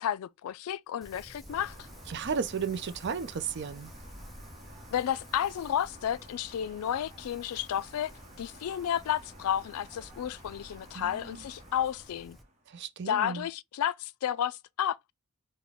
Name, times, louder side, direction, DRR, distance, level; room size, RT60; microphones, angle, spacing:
voice 1, 0.0-1.8 4.9-8.1 8.4-12.4 13.1-15.1, left 10 dB, 85° left, 0.3 m, -32 dB
Wind, 1.0-12.4, equal, ahead, 0.5 m, -51 dB
sound 1, 1.5-12.7, right 1 dB, 30° right, 0.9 m, -53 dB
voice 2, 2.1-3.9 10.9-11.4 12.7-13.5, right 6 dB, 55° right, 0.4 m, -34 dB
3.9 x 2.1 x 3.4 m
head